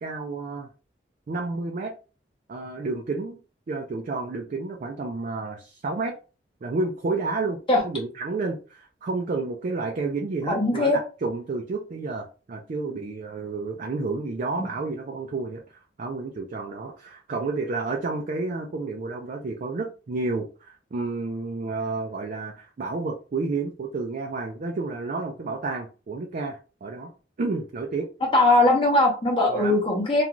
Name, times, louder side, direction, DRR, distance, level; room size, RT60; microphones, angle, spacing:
voice 1, 0.0-0.7 1.3-1.9 2.5-3.4 3.7-6.2 6.6-7.6 7.8-27.1 27.4-28.1 29.4-29.8, right 3 dB, 45° right, 2 dB, 0.4 m, -30 dB
voice 2, 10.5-11.0 14.6-14.7 28.3-30.2, left 2 dB, 30° left, -2 dB, 0.7 m, -20 dB
2.5 x 2.3 x 2.9 m, 0.35 s
head